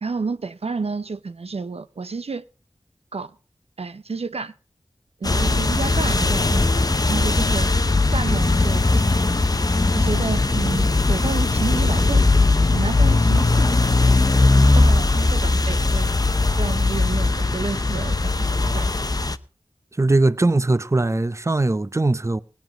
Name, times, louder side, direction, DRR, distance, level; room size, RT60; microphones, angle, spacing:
voice 1, 0.0-2.4 3.1-3.3 3.8-4.5 5.2-7.7 8.1-9.2 9.9-12.3 12.7-13.8 14.7-16.1 16.6-18.5 18.7-19.1, right 4 dB, 65° right, 0.6 m, -30 dB
sound 1, 5.2-19.4, left 3 dB, 35° left, 0.7 m, -19 dB
voice 2, 20.0-22.4, right 2 dB, 25° right, 0.6 m, -20 dB
18.0 x 9.3 x 4.9 m
wide cardioid pair, 55°, 11 cm